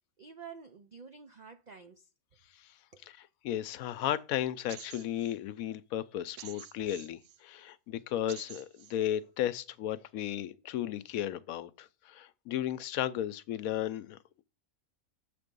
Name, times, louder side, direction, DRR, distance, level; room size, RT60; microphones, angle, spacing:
voice 1, 0.2-2.1 2.9-3.1, right 6 dB, 85° right, 0.3 m, -49 dB
voice 2, 3.1-14.4, left 11 dB, 85° left, 1.0 m, -35 dB
sound 1, 4.7-5.4 6.4-7.4 8.3-9.0, right 10 dB, 70° right, 0.9 m, -49 dB
7.3 x 3.4 x 5.2 m
omnidirectional pair, 1.5 m